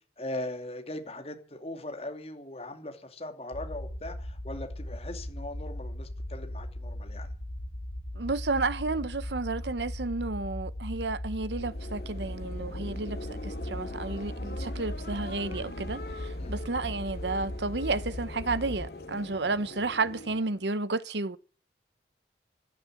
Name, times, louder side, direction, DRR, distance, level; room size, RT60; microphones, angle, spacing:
voice 1, 0.2-7.3 16.4-16.6, left 1 dB, 35° left, 2.7 m, -39 dB
sound 1, 3.5-18.9, left 1 dB, 90° left, 1.8 m, -38 dB
voice 2, 8.2-21.4, right 3 dB, 75° right, 0.9 m, -32 dB
sound 2, 11.3-20.7, left 1 dB, 60° left, 2.5 m, -41 dB
15.5 x 11.5 x 7.7 m
head